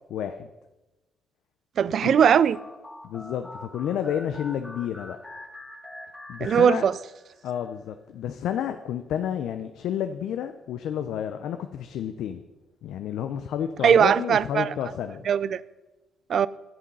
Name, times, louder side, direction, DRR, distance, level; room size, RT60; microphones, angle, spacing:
voice 1, 0.1-0.5 2.0-2.2 3.0-5.2 6.3-6.9 7.4-12.4 12.8-15.2, left 9 dB, 80° left, 0.5 m, -30 dB
voice 2, 1.8-2.6 6.4-7.0 13.8-14.7 15.3-15.6 16.3-16.5, right 8 dB, 60° right, 0.4 m, -20 dB
sound 1, 2.2-7.3, left 1 dB, 10° left, 1.5 m, -44 dB
10.0 x 7.7 x 5.4 m
cardioid pair, 90°, 0 cm